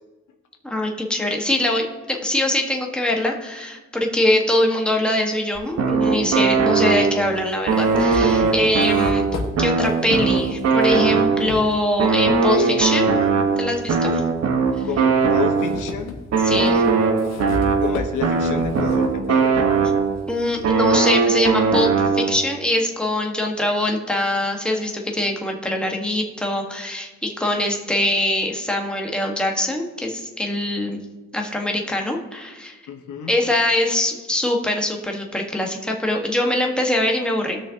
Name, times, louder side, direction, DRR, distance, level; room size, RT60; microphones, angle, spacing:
voice 1, 0.6-9.2 9.6-13.1 13.6-14.2 16.4-16.8 20.3-31.0 31.3-32.8 33.3-37.6, left 1 dB, 5° left, 1 dB, 1.5 m, -23 dB
sound 1, 5.5-5.6 6.7-6.8 7.3-12.4 13.0-14.1 14.6-20.7, left 3 dB, 60° left, 1.5 m, -34 dB
sound 2, 5.8-7.3 7.7-11.6 12.0-15.9 16.3-20.3 20.6-22.5, right 5 dB, 55° right, 1.3 m, -20 dB
voice 2, 8.4-8.7 12.5-12.9 14.8-16.2 17.8-19.7 32.9-33.3, left 7 dB, 80° left, 5 dB, 1.1 m, -30 dB
18.0 x 6.3 x 2.9 m, 1.2 s
cardioid pair, 90°, 30 cm